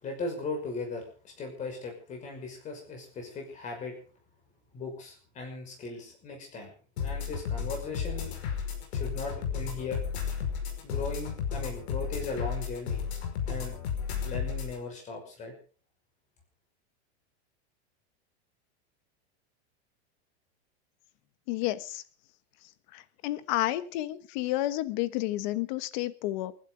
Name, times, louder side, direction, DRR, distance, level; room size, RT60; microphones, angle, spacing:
voice 1, 0.0-1.0 1.4-3.9 4.7-6.7 7.0-8.3 8.9-10.0 10.8-13.0 13.5-13.8 14.2-15.5, left 3 dB, 20° left, 3 dB, 5.8 m, -38 dB
sound 1, 7.0-14.8, left 7 dB, 70° left, 5.4 m, -33 dB
voice 2, 21.5-22.0 22.9-26.5, left 15 dB, 40° left, 14 dB, 1.3 m, -31 dB
29.0 x 12.0 x 3.9 m, 0.38 s
supercardioid pair, 170°, 34 cm